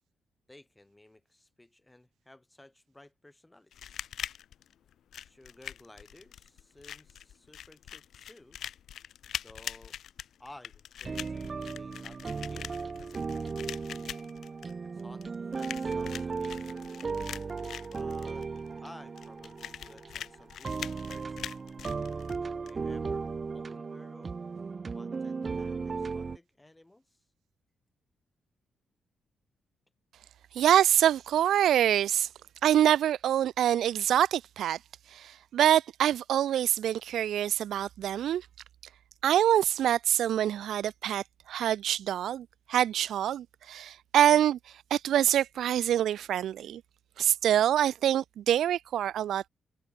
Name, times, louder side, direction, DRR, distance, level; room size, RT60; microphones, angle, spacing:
voice 1, 0.5-4.0 5.2-8.6 9.4-10.0 10.4-13.5 14.8-16.8 17.8-18.5 18.8-21.4 22.5-23.3 23.5-24.3 24.9-27.2, left 1 dB, 10° left, 6.5 m, -55 dB
sound 1, 3.7-22.7, left 10 dB, 70° left, 5.0 m, -43 dB
sound 2, 11.0-26.4, right 4 dB, 35° right, 1.4 m, -36 dB
voice 2, 30.5-32.3 32.6-34.8 35.1-38.5 39.2-44.6 44.9-46.8 47.2-49.5, right 11 dB, 80° right, 0.4 m, -25 dB
cardioid pair, 120°, 0 cm